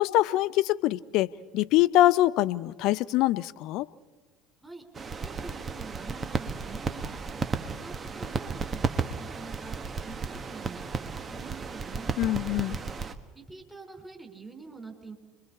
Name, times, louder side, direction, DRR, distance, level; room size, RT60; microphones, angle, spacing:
voice 1, 0.0-3.9 12.2-12.8, left 15 dB, 55° left, 18 dB, 0.7 m, -24 dB
sound 1, 4.9-13.2, right 5 dB, 30° right, 1.5 m, -34 dB
voice 2, 5.2-7.5 7.8-12.1 13.3-15.1, right 4 dB, 10° right, 3 dB, 4.6 m, -46 dB
29.5 x 23.0 x 4.4 m, 1.4 s
figure-of-eight pair, 65°, 0 cm